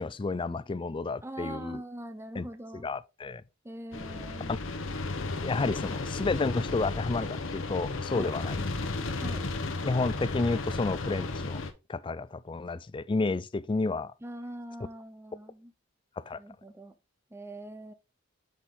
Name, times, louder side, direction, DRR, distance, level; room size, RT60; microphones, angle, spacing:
voice 1, 0.0-1.8 2.4-2.5 2.8-3.4 5.3-8.6 9.8-11.6 11.9-14.1 16.2-16.4, left 3 dB, 25° left, 0.4 m, -31 dB
voice 2, 1.2-2.9 3.6-4.6 8.1-8.4 9.1-9.5 14.2-15.7 16.4-16.9 17.3-17.9, right 1 dB, 10° right, 0.7 m, -42 dB
sound 1, 3.9-11.7, left 3 dB, 70° left, 1.0 m, -34 dB
8.4 x 4.4 x 3.7 m
head